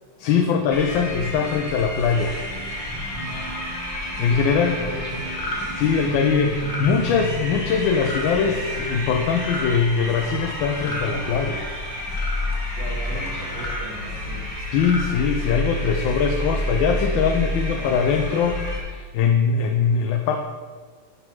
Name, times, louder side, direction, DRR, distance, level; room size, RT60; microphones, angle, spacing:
voice 1, 0.2-2.4 3.9-4.8 5.7-11.6 13.1-13.3 14.7-20.4, left 6 dB, 75° left, 4 dB, 1.3 m, -22 dB
sound 1, 0.7-18.8, equal, 15° left, 1.5 m, -29 dB
voice 2, 3.2-3.7 4.3-5.3 8.3-8.9 12.8-14.5 17.6-17.9, equal, 25° right, -7 dB, 2.0 m, -38 dB
sound 2, 5.3-5.6 6.5-6.9 8.0-8.3 9.3-9.7 10.7-11.1 12.1-12.4 13.4-13.8 14.6-15.1, equal, 45° left, 1.5 m, -33 dB
11.0 x 3.8 x 4.6 m, 1.5 s
omnidirectional pair, 2.2 m